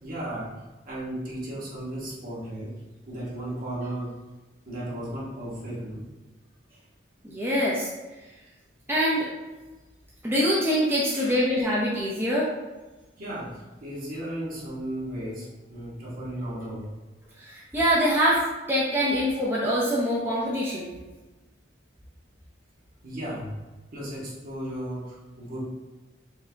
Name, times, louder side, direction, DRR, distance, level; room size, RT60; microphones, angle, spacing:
voice 1, 0.0-2.7 3.1-4.2 4.6-6.0 11.1-11.5 13.2-16.9 23.0-23.5 23.9-25.6, right 1 dB, 50° right, -6 dB, 1.4 m, -35 dB
voice 2, 7.2-7.9 8.9-9.3 10.2-12.5 17.4-18.4 18.7-20.9, equal, 10° right, -6 dB, 0.6 m, -24 dB
4.5 x 2.7 x 3.4 m, 1.2 s
head